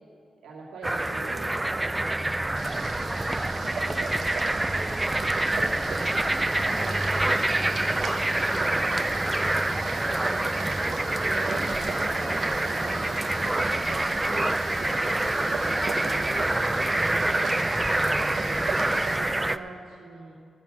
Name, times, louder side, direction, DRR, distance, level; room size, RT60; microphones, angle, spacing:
voice 1, 0.4-2.0 5.4-6.5 6.9-8.7 10.2-18.6 19.1-20.3, right 3 dB, 90° right, -4 dB, 2.1 m, -43 dB
sound 1, 0.8-19.6, right 1 dB, 20° right, 0.4 m, -26 dB
Boiling, 2.6-19.2, right 4 dB, 70° right, 1.4 m, -37 dB
16.5 x 7.0 x 6.1 m, 2.3 s
cardioid pair, 55°, 0 cm